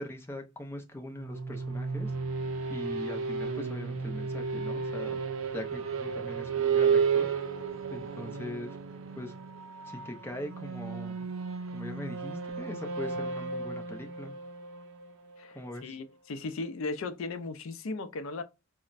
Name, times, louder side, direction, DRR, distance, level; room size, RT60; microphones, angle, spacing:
voice 1, 0.0-2.1 2.7-5.2 5.5-7.3 7.9-8.8 9.2-9.3 9.9-11.2 11.7-14.3 15.5-16.0, left 1 dB, 10° left, 0.5 m, -41 dB
sound 1, 1.2-15.8, right 5 dB, 65° right, 0.5 m, -33 dB
voice 2, 15.4-18.4, left 3 dB, 65° left, 0.4 m, -37 dB
4.1 x 2.1 x 2.4 m
head